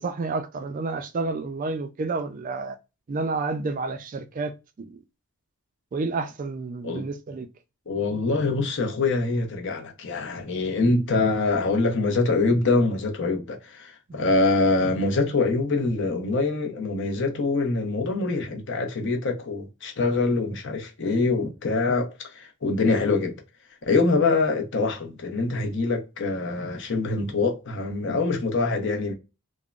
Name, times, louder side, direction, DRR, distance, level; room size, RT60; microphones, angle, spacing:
voice 1, 0.0-2.8 3.1-4.5 4.8-5.0 5.9-7.5, right 3 dB, 35° right, 0.3 m, -30 dB
voice 2, 7.9-23.3 23.8-29.1, left 3 dB, 55° left, 0.8 m, -24 dB
3.6 x 2.1 x 2.3 m
head